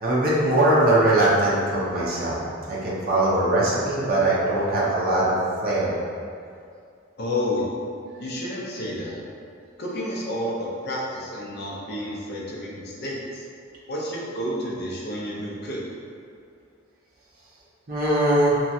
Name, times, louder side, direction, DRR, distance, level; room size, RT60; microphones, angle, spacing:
voice 1, 0.0-2.4 2.7-5.3 5.6-5.9 17.9-18.6, right 1 dB, 45° right, -7 dB, 0.6 m, -21 dB
voice 2, 7.2-7.7 8.2-9.2 9.8-13.4 13.9-15.8, left 1 dB, 50° left, -4 dB, 0.5 m, -30 dB
3.0 x 2.3 x 2.7 m, 2.4 s
head